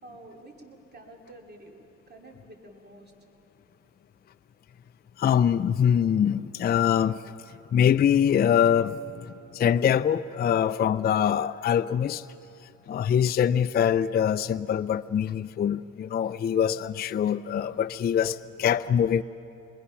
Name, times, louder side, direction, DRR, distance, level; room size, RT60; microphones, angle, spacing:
voice 1, 0.0-3.1, right 1 dB, 35° right, 1 dB, 2.6 m, -49 dB
voice 2, 5.2-7.2 7.7-9.0 9.5-12.2 12.9-19.2, left 8 dB, 35° left, 12 dB, 0.4 m, -23 dB
25.5 x 21.0 x 5.7 m, 2.8 s
cardioid pair, 90°, 30 cm